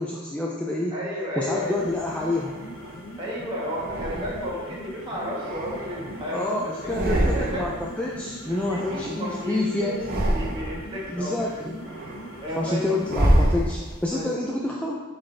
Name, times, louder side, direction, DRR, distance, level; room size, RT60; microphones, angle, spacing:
voice 1, 0.0-0.9 1.4-2.6 6.3-10.1 11.1-11.7 12.6-14.9, left 2 dB, 5° left, -3 dB, 0.4 m, -28 dB
voice 2, 0.9-1.8 3.2-7.7 8.5-9.9 10.3-11.4 12.4-12.8 14.1-14.3, equal, 20° right, -6 dB, 1.5 m, -33 dB
sound 1, 1.4-13.4, left 1 dB, 75° left, 1.0 m, -42 dB
sound 2, 1.9-3.1 3.7-4.7 5.2-6.4 6.7-7.9 8.1-9.5 9.9-10.9 11.4-14.1, right 1 dB, 45° right, 0.9 m, -27 dB
7.3 x 4.1 x 3.3 m, 1.3 s
head